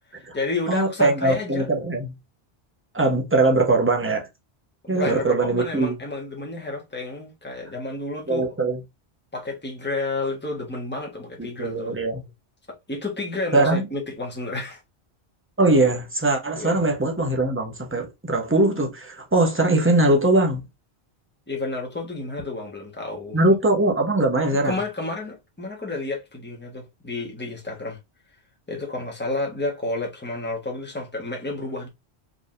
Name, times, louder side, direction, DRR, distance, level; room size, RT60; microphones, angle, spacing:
voice 1, 0.1-1.7 4.8-8.5 9.3-12.0 12.9-14.8 16.5-16.8 21.5-23.4 24.5-28.0 28.7-31.9, left 2 dB, 10° left, 1.3 m, -30 dB
voice 2, 0.7-2.2 2.9-4.3 4.9-6.0 8.3-8.8 11.6-12.2 13.5-13.9 15.6-20.6 23.3-24.8, right 2 dB, 10° right, 1.0 m, -21 dB
4.2 x 3.4 x 2.5 m
omnidirectional pair, 1.1 m